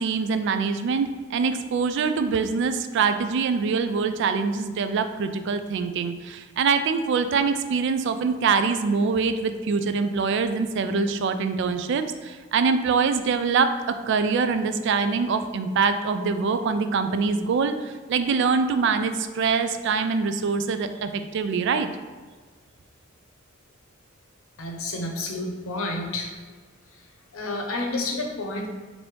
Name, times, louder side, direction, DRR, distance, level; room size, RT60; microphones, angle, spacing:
voice 1, 0.0-21.9, right 5 dB, 60° right, 9 dB, 0.3 m, -24 dB
voice 2, 24.6-26.4 26.9-28.7, left 2 dB, 85° left, 2 dB, 0.7 m, -30 dB
3.3 x 2.6 x 4.5 m, 1.4 s
head